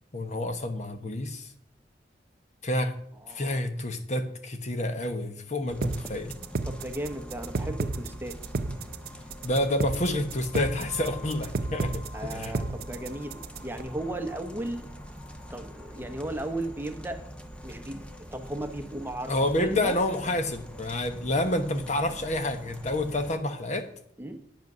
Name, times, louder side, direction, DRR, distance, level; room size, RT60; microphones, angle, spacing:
voice 1, 0.1-1.5 2.6-2.9 3.3-6.3 9.4-12.0 12.3-12.5 19.3-23.9, left 1 dB, 45° left, 8 dB, 1.1 m, -28 dB
voice 2, 3.2-3.6 6.7-8.4 12.1-14.9 15.5-17.2 17.6-20.0 24.2-24.4, right 1 dB, 10° right, 7 dB, 1.0 m, -35 dB
sound 1, 5.7-23.3, equal, 5° left, 1.1 m, -43 dB
sound 2, 5.8-13.8, right 3 dB, 60° right, 0.5 m, -32 dB
9.3 x 8.2 x 6.1 m, 0.67 s
head